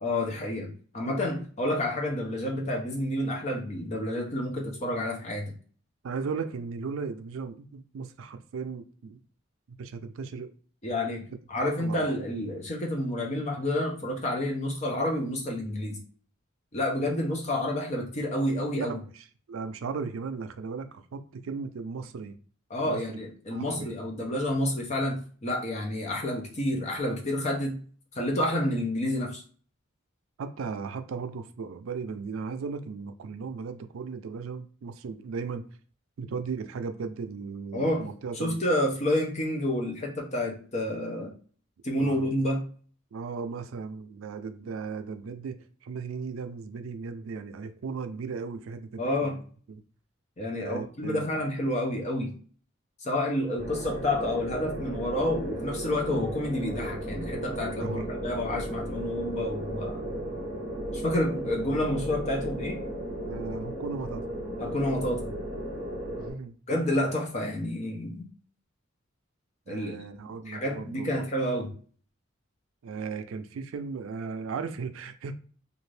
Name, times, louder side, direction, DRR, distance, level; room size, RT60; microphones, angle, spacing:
voice 1, 0.0-5.5 10.8-16.0 16.7-19.0 22.7-27.8 28.1-29.4 37.7-38.1 38.4-41.3 41.8-42.7 49.0-49.4 50.4-52.4 53.0-60.0 60.9-62.8 64.6-65.3 66.7-68.2 69.7-70.0 70.5-71.8, left 1 dB, 35° left, 0.7 m, -29 dB
voice 2, 6.0-9.2 9.8-10.5 11.6-12.1 18.7-22.4 22.8-23.2 23.5-23.9 30.4-35.6 36.2-38.6 42.0-42.3 43.1-49.4 49.7-49.8 50.6-51.3 57.8-58.1 63.2-64.2 66.2-66.5 69.7-71.1 72.8-75.3, right 5 dB, 85° right, 0.4 m, -36 dB
sound 1, 53.6-66.3, right 1 dB, 55° left, 1.6 m, -35 dB
2.6 x 2.5 x 3.2 m
head